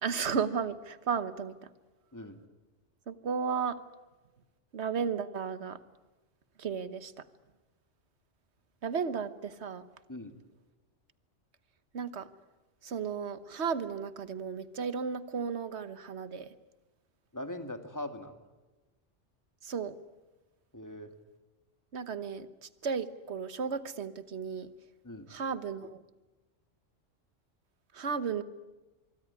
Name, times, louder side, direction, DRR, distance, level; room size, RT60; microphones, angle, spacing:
voice 1, 0.0-1.5 3.1-3.8 4.7-5.8 6.6-7.1 8.8-9.8 11.9-12.3 12.8-16.5 19.6-19.9 21.9-24.7 25.3-26.0 27.9-28.4, right 6 dB, 65° right, 13 dB, 1.5 m, -34 dB
voice 2, 17.3-18.4 20.7-21.1 25.0-25.3, left 1 dB, 15° left, 7 dB, 2.1 m, -41 dB
25.0 x 23.5 x 9.7 m, 1.1 s
omnidirectional pair, 1.2 m